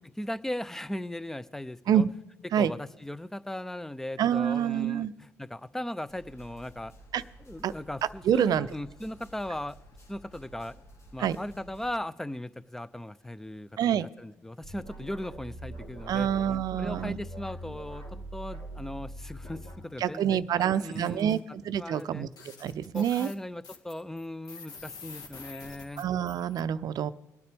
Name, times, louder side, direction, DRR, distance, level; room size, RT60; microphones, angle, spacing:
voice 1, 0.2-2.1 2.6-6.9 7.4-9.8 10.1-10.8 11.1-16.3 16.8-18.0 18.3-21.4 21.8-22.3 22.9-26.1, left 1 dB, 5° left, 17 dB, 0.5 m, -38 dB
voice 2, 4.2-5.1 7.1-7.2 7.6-7.7 8.3-8.7 11.2-11.4 13.8-14.1 16.1-17.2 20.0-22.3 22.6-23.3 26.0-27.1, right 9 dB, 60° right, 15 dB, 0.5 m, -27 dB
sound 1, 6.1-11.9, right 1 dB, 40° left, 1.7 m, -53 dB
sound 2, 14.6-19.8, right 1 dB, 85° left, 3.2 m, -42 dB
sound 3, 20.6-21.4 22.0-22.1 22.3-26.6, left 4 dB, 60° left, 1.6 m, -47 dB
25.5 x 9.4 x 3.4 m, 1.0 s
hypercardioid pair, 55°, 8 cm